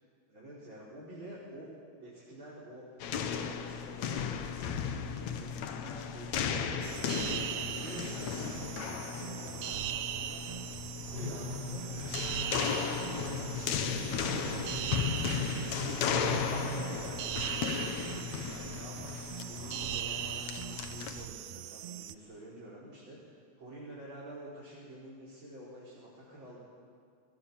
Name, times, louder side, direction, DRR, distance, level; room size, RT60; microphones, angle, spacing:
voice 1, 0.3-1.7 2.0-4.2 4.5-7.1 7.5-11.8 12.5-15.0 15.5-23.2 23.6-26.6, right 1 dB, 40° right, -7 dB, 5.6 m, -49 dB
sound 1, 3.0-21.3, left 7 dB, 70° left, 2.5 m, -36 dB
sound 2, 6.8-22.1, right 12 dB, 80° right, 2.1 m, -40 dB
sound 3, 11.1-16.8, left 3 dB, 35° left, 6.2 m, -39 dB
29.5 x 21.5 x 7.3 m, 2.3 s
omnidirectional pair, 3.4 m